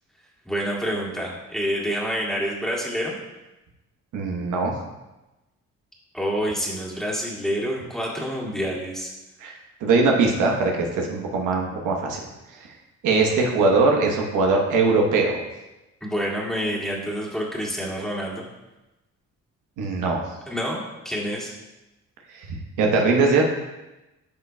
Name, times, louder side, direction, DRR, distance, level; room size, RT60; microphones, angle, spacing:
voice 1, 0.5-3.2 6.1-9.1 16.0-18.4 20.5-21.5, equal, ahead, -4 dB, 1.9 m, -27 dB
voice 2, 4.1-4.7 9.4-9.5 9.8-12.2 12.5-12.6 13.0-15.4 19.8-20.2 22.3-23.4, right 3 dB, 90° right, 0 dB, 1.1 m, -21 dB
10.5 x 5.7 x 2.2 m, 1.0 s
cardioid pair, 90°, 30 cm